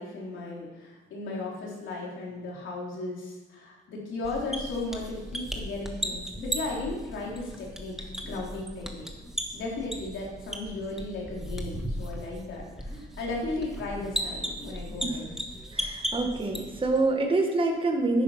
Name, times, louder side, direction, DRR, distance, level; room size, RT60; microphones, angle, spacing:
voice 1, 0.0-9.1 9.5-15.3, left 2 dB, 75° left, -3 dB, 3.8 m, -36 dB
sound 1, 4.2-17.0, equal, ahead, 1.5 m, -36 dB
voice 2, 15.7-18.2, right 2 dB, 25° right, 2 dB, 1.7 m, -26 dB
9.9 x 9.4 x 5.8 m, 1.2 s
cardioid pair, 90°, 20 cm